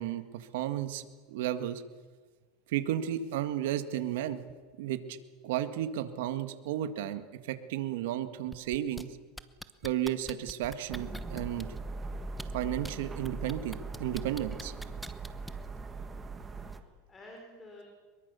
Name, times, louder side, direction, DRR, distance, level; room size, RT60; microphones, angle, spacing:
voice 1, 0.0-1.8 2.7-4.4 4.8-9.1 9.8-11.7 12.5-14.7, right 11 dB, 75° right, 9 dB, 1.8 m, -33 dB
sound 1, 8.5-9.0 9.4-11.8 12.3-12.9 13.2-15.7 16.7-16.8, equal, ahead, 1.0 m, -43 dB
sound 2, 10.9-16.8, right 3 dB, 15° right, 1.7 m, -40 dB
voice 2, 15.8-16.2 16.6-17.8, left 1 dB, 20° left, 1 dB, 4.4 m, -52 dB
23.5 x 22.0 x 7.0 m, 1.4 s
supercardioid pair, 140°, 0 cm